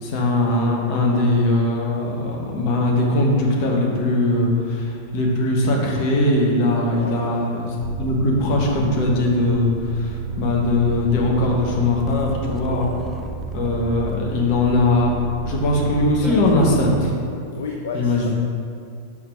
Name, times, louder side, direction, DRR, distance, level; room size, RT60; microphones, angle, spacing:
voice 1, 0.0-7.7 8.0-10.1 10.4-12.9 13.5-15.1 15.4-17.1 17.9-18.3, left 2 dB, 45° left, -2 dB, 1.4 m, -20 dB
voice 2, 6.9-7.5 17.5-18.3, left 5 dB, 60° left, 0 dB, 0.6 m, -31 dB
sound 1, 7.8-17.2, right 6 dB, 20° right, 0.5 m, -33 dB
5.8 x 4.5 x 5.8 m, 2.3 s
figure-of-eight pair, 90°, 0 cm